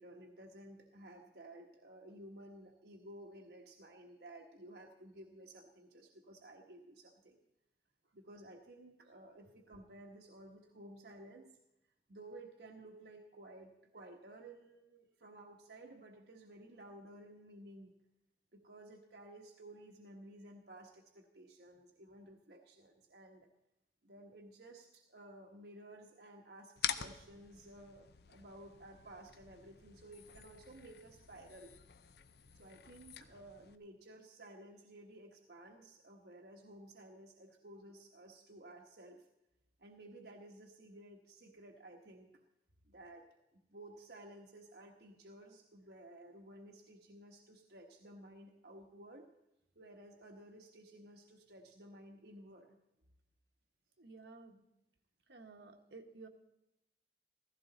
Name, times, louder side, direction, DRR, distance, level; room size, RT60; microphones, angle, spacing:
voice 1, 0.0-7.4 8.1-11.5 12.1-18.0 18.5-23.5 24.0-31.7 32.5-39.3 39.8-42.3 42.8-43.3 43.5-49.3 49.8-52.8, right 1 dB, 65° right, 1 dB, 1.2 m, -55 dB
sound 1, 26.8-33.8, left 9 dB, 60° left, 0.7 m, -46 dB
voice 2, 54.0-54.6 55.3-56.3, right 3 dB, 80° right, 3 dB, 1.5 m, -53 dB
15.5 x 14.5 x 4.0 m, 0.88 s
head